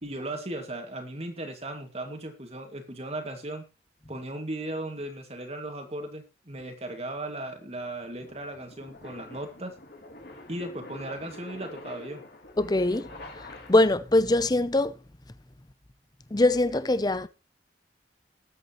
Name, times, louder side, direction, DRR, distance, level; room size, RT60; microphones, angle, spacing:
voice 1, 0.0-3.7 4.1-9.7 10.5-12.2, right 1 dB, 35° right, 2.3 m, -37 dB
sound 1, 6.5-14.1, left 2 dB, 60° left, 2.8 m, -47 dB
voice 2, 12.6-14.9 16.3-17.3, left 2 dB, 25° left, 0.7 m, -23 dB
20.0 x 8.2 x 3.1 m
head